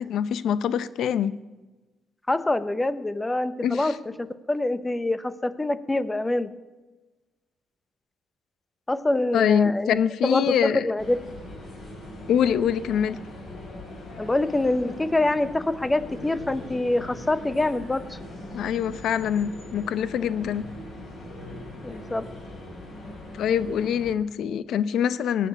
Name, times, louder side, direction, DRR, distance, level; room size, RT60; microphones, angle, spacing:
voice 1, 0.0-1.4 3.6-3.9 9.3-10.8 12.3-13.2 18.5-20.7 23.4-25.5, left 8 dB, 75° left, 16 dB, 0.6 m, -24 dB
voice 2, 2.3-6.5 8.9-11.2 14.2-18.2 21.8-22.3, left 2 dB, 15° left, 15 dB, 0.8 m, -25 dB
sound 1, 11.0-24.1, left 1 dB, 50° left, 4.8 m, -41 dB
18.5 x 7.0 x 8.3 m, 1.2 s
cardioid pair, 90°, 0 cm